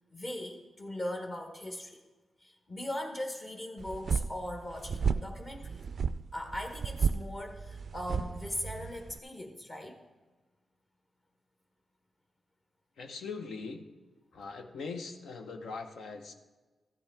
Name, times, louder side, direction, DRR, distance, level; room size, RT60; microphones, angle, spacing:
voice 1, 0.1-2.0 2.4-5.8 6.3-9.9, left 1 dB, 35° left, 3 dB, 1.2 m, -39 dB
sound 1, 3.8-9.2, right 6 dB, 55° right, 0.3 m, -33 dB
voice 2, 13.0-13.8 14.3-16.3, left 4 dB, 85° left, 5 dB, 1.0 m, -41 dB
13.5 x 8.5 x 3.5 m, 1.3 s
cardioid pair, 100°, 0 cm